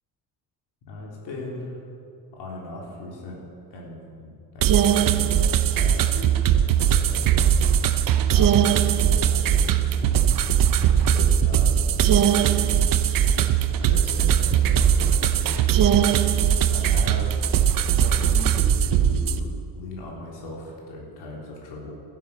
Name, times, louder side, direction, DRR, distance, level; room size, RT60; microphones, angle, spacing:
voice 1, 0.9-1.7 2.3-3.4 3.7-4.3 4.5-6.4 6.8-10.2 11.1-12.7 13.8-17.4 18.0-21.9, left 2 dB, 70° left, -3 dB, 3.6 m, -39 dB
sound 1, 4.6-19.4, right 9 dB, 50° right, 0.7 m, -20 dB
15.5 x 12.0 x 5.5 m, 2.6 s
cardioid pair, 155°, 42 cm